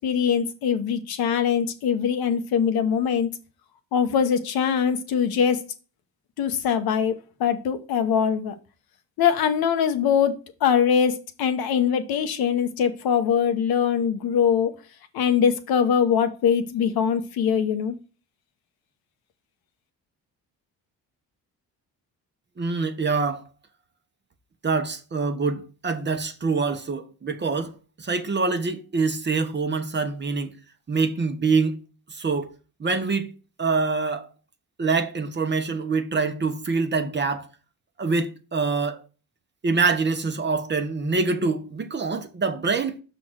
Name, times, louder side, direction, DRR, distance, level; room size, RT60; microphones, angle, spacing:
voice 1, 0.0-3.3 3.9-5.7 6.4-8.5 9.2-14.7 15.1-17.9, left 7 dB, 70° left, 1.0 m, -22 dB
voice 2, 22.6-23.5 24.6-27.7 28.0-30.5 30.9-31.8 32.1-32.5 32.8-34.3 34.8-37.5 38.0-39.0 39.6-43.0, right 4 dB, 30° right, 1.0 m, -25 dB
6.0 x 3.9 x 6.1 m
cardioid pair, 95°, 38 cm